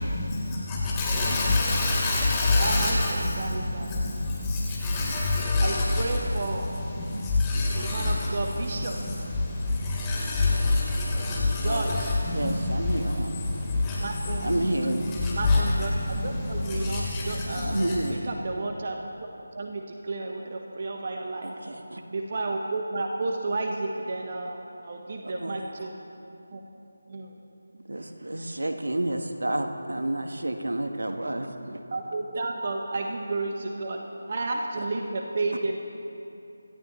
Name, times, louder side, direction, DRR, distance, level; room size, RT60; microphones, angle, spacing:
voice 1, 0.0-18.0, left 2 dB, 15° left, -7 dB, 4.0 m, -27 dB
voice 2, 2.6-4.1 5.6-6.7 7.7-9.0 11.6-12.2 14.0-14.4 15.4-15.9 16.2-17.9 18.3-19.0 19.5-21.5 22.1-24.6 24.8-25.9 26.5-26.6 27.1-27.3 31.9-35.8, right 2 dB, 40° right, 2 dB, 1.3 m, -32 dB
voice 3, 12.3-13.5 14.4-15.1 17.6-18.2 21.4-22.0 25.2-25.6 27.7-31.8 32.3-32.4 35.5-35.6, right 1 dB, 70° right, 5 dB, 1.4 m, -30 dB
27.0 x 13.5 x 3.3 m, 2.7 s
figure-of-eight pair, 160°, 0 cm